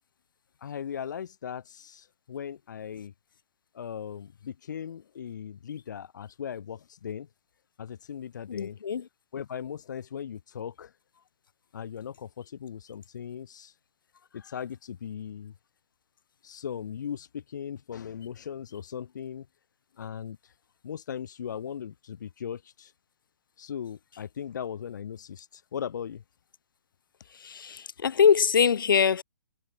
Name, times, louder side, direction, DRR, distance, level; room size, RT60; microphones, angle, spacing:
voice 1, 0.6-3.1 3.7-7.3 7.8-8.8 9.3-10.9 11.7-13.7 14.3-15.5 16.4-19.4 20.0-20.4 20.8-22.9 23.6-26.2, left 8 dB, 65° left, 1.5 m, -38 dB
voice 2, 8.5-9.1 27.3-29.2, left 7 dB, 90° left, 0.5 m, -23 dB
hypercardioid pair, 155°, 11 cm